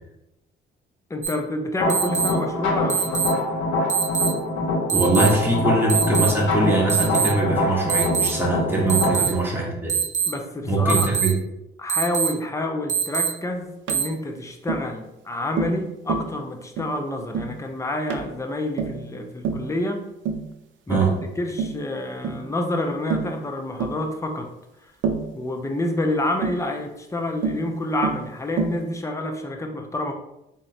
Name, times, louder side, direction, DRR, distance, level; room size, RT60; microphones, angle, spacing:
voice 1, 1.1-3.3 8.9-9.3 10.3-11.2 11.8-20.0 20.9-24.5 24.8-24.9 25.3-30.1, left 1 dB, 15° left, 4 dB, 0.6 m, -28 dB
sound 1, 1.2-1.3 1.9-2.3 2.9-3.3 3.9-4.3 4.9-5.3 5.9-6.3 6.9-7.3 7.9-8.3 8.9-9.3 9.9-10.3 10.9-11.3 11.9-12.3 12.9-13.3 13.9-14.0, right 8 dB, 35° right, 0.7 m, -22 dB
sound 2, 1.8-9.1, left 2 dB, 80° left, 1.1 m, -24 dB
voice 2, 4.9-10.0 10.6-11.3 20.9-21.2, right 2 dB, 10° right, -4 dB, 1.3 m, -22 dB
Tap, 13.9-14.1 14.7-14.9 15.6-15.8 16.1-16.3 16.8-17.0 17.3-17.6 18.1-18.3 18.8-19.0 19.4-19.7 20.3-20.5 20.9-21.2 21.6-21.8 22.2-22.4 23.1-23.4 23.8-24.0 25.0-25.3 26.4-26.6 27.4-27.7 28.0-28.3 28.6-28.8, right 6 dB, 75° right, 0.5 m, -27 dB
3.6 x 2.9 x 3.3 m, 0.88 s
cardioid pair, 90°, 20 cm